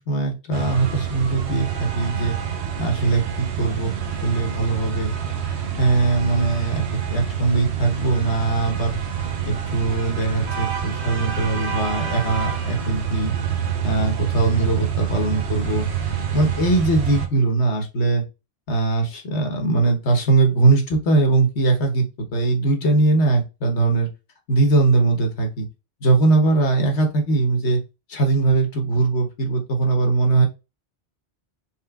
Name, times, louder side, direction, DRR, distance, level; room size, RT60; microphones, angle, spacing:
voice 1, 0.1-2.4 2.8-3.9 4.2-5.1 5.5-6.8 7.1-13.3 13.8-15.9 16.3-18.2 18.7-22.0 22.3-24.1 24.5-25.7 26.0-27.8 28.1-30.5, right 3 dB, 85° left, 3 dB, 1.4 m, -21 dB
sound 1, 0.5-17.3, right 8 dB, 75° right, 1.1 m, -27 dB
4.3 x 3.7 x 2.3 m, 0.27 s
omnidirectional pair, 1.1 m